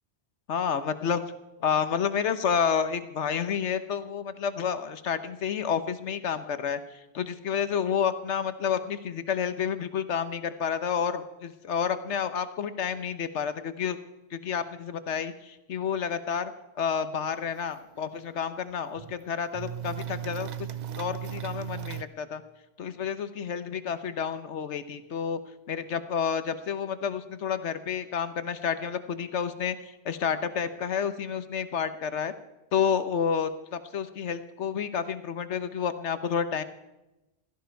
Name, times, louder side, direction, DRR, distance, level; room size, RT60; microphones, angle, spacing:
voice 1, 0.5-1.2 1.6-14.0 14.3-16.5 16.8-22.4 22.8-25.4 25.7-32.3 32.7-36.6, left 7 dB, 75° left, 12 dB, 1.2 m, -30 dB
sound 1, 17.6-17.7 18.0-18.1 18.6-19.2 19.5-22.0, right 10 dB, 50° right, 0.6 m, -36 dB
16.5 x 13.5 x 4.6 m, 0.97 s
omnidirectional pair, 1.2 m